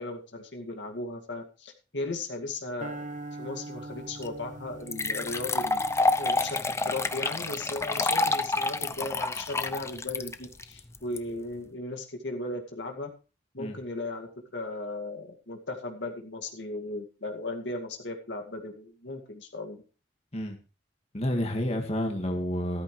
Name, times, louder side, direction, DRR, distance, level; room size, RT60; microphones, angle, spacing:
voice 1, 0.0-3.1 3.4-5.8 6.2-13.1 13.5-19.8, left 2 dB, 75° left, 3 dB, 2.2 m, -36 dB
sound 1, 2.8-9.1, right 2 dB, 45° right, 1.2 m, -44 dB
sound 2, 4.2-4.3 4.9-11.2, left 3 dB, 15° left, 0.6 m, -28 dB
voice 2, 21.1-22.8, equal, 35° left, 3 dB, 2.0 m, -29 dB
13.5 x 13.5 x 3.2 m, 0.34 s
head